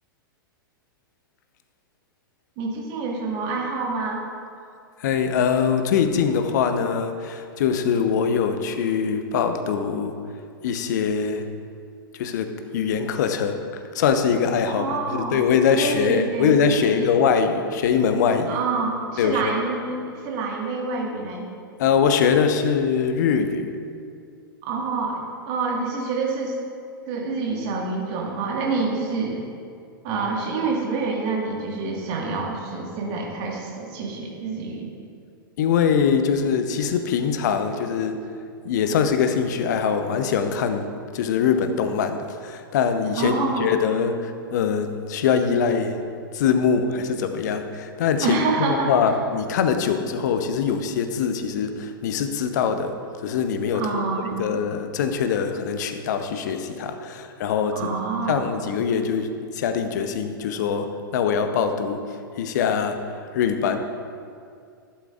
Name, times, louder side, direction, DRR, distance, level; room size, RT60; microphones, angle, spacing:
voice 1, 2.6-4.2 14.7-15.4 15.8-17.1 18.5-21.5 24.6-26.6 27.1-29.4 30.0-34.9 43.2-43.7 48.2-49.2 53.7-54.3 57.8-58.4, right 4 dB, 40° right, 0 dB, 1.8 m, -27 dB
voice 2, 5.0-10.2 10.6-11.5 12.1-18.6 19.2-19.5 21.8-23.7 35.6-38.3 38.6-46.0 46.3-53.0 53.2-54.0 54.3-57.9 58.3-62.0 62.4-63.8, left 6 dB, 50° left, 8 dB, 0.8 m, -23 dB
12.5 x 11.0 x 2.5 m, 2.3 s
figure-of-eight pair, 100°, 12 cm